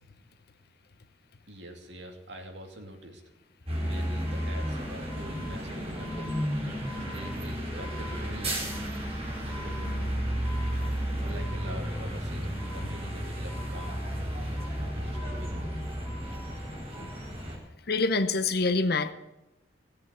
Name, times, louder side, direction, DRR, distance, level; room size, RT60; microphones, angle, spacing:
voice 1, 1.5-3.2 3.7-6.4 6.9-8.7 9.4-10.1 11.3-14.0 14.7-15.7, right 1 dB, 70° right, 3 dB, 2.7 m, -45 dB
sound 1, 3.7-17.6, equal, 35° right, 4.5 m, -33 dB
sound 2, 3.8-12.1 12.6-14.3 14.6-17.2, left 1 dB, 15° left, 3.5 m, -50 dB
voice 2, 17.9-19.1, left 3 dB, 60° left, 11 dB, 1.0 m, -26 dB
17.5 x 8.3 x 8.1 m, 0.93 s
head